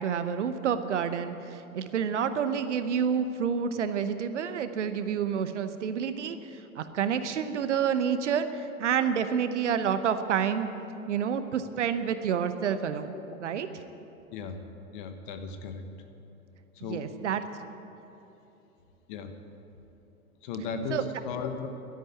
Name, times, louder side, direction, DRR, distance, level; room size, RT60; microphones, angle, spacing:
voice 1, 0.0-10.7 11.1-13.7 16.8-17.4 20.9-21.1, right 7 dB, 55° right, 11 dB, 0.9 m, -29 dB
voice 2, 14.9-15.9 16.8-17.2 19.1-19.4 20.4-21.7, left 5 dB, 35° left, 7 dB, 1.2 m, -36 dB
12.0 x 11.0 x 9.1 m, 2.9 s
figure-of-eight pair, 105°, 44 cm